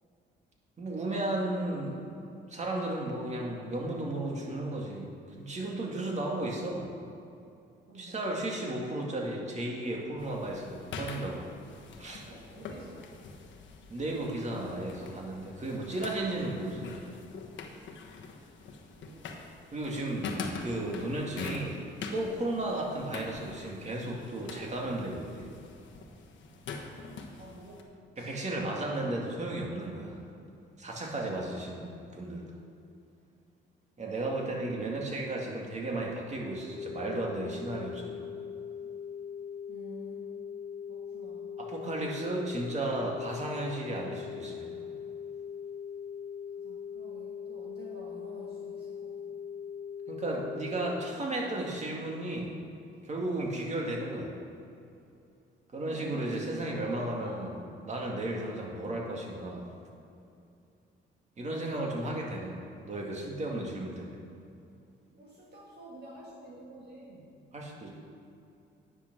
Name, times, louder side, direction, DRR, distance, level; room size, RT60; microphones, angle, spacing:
voice 1, 0.8-2.2 2.5-6.9 7.9-11.5 12.0-12.2 13.9-17.0 19.7-21.8 22.1-25.5 28.2-30.2 30.8-32.5 34.0-38.1 41.6-44.7 50.1-52.5 53.0-54.3 55.7-57.6 57.8-59.7 61.4-62.5 62.8-64.2 67.5-67.9, right 1 dB, 35° right, -1 dB, 2.3 m, -34 dB
voice 2, 7.9-8.2 12.2-13.1 18.9-19.5 27.4-27.9 28.1-28.5 34.1-35.0 39.7-40.3 40.9-41.5 46.6-49.4 55.8-57.4 60.3-60.5 65.1-67.3, right 1 dB, 55° right, -3 dB, 1.5 m, -48 dB
sound 1, 10.2-27.8, left 4 dB, 70° left, 1.2 m, -44 dB
sound 2, 36.7-51.1, left 7 dB, 20° left, 0.4 m, -41 dB
9.8 x 6.9 x 6.1 m, 2.6 s
cardioid pair, 90°, 20 cm